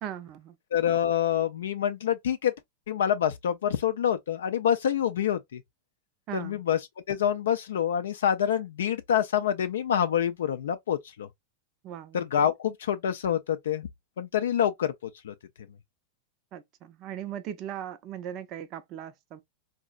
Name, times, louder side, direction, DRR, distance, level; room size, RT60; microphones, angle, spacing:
voice 1, 0.0-0.6 6.3-6.6 11.8-12.2 16.5-19.4, right 10 dB, 45° right, 0.4 m, -38 dB
voice 2, 0.7-2.5 2.9-5.6 6.3-6.8 7.1-11.3 12.1-13.9 14.2-14.9 15.2-15.3, left 9 dB, 70° left, 0.3 m, -26 dB
3.8 x 2.0 x 2.4 m
hypercardioid pair, 95°, 0 cm